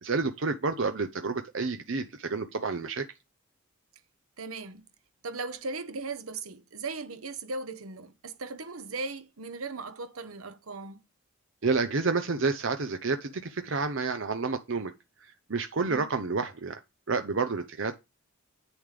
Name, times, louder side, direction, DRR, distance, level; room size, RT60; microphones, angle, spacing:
voice 1, 0.0-3.1 11.6-14.9 15.2-16.8 17.1-17.9, right 4 dB, 65° right, 0.7 m, -29 dB
voice 2, 4.4-4.8 5.2-11.0 15.8-16.1, right 3 dB, 85° right, 1.1 m, -38 dB
9.1 x 7.0 x 3.4 m
head